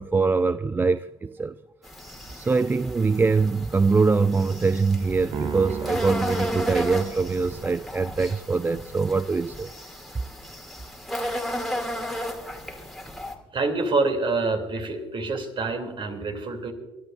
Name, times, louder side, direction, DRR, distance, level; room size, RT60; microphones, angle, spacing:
voice 1, 0.0-1.5 2.3-9.7, right 4 dB, 15° right, 15 dB, 0.3 m, -23 dB
sound 1, 1.8-13.3, equal, ahead, 2.2 m, -34 dB
Piano, 5.3-7.7, right 5 dB, 75° right, 1.5 m, -35 dB
voice 2, 13.5-16.7, right 3 dB, 40° right, 5 dB, 2.6 m, -26 dB
27.5 x 12.0 x 2.4 m, 1.2 s
hypercardioid pair, 60°, 13 cm